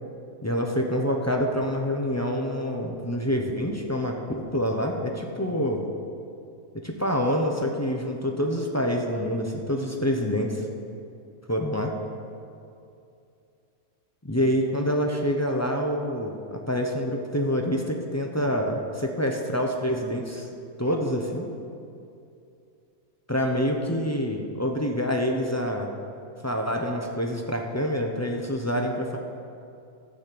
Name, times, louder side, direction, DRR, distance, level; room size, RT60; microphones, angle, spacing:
voice 1, 0.4-5.8 6.8-10.6 11.5-12.0 14.2-20.5 20.8-21.5 23.3-25.9 26.4-29.2, equal, 20° left, 1 dB, 0.4 m, -26 dB
12.5 x 6.3 x 7.7 m, 2.6 s
omnidirectional pair, 1.6 m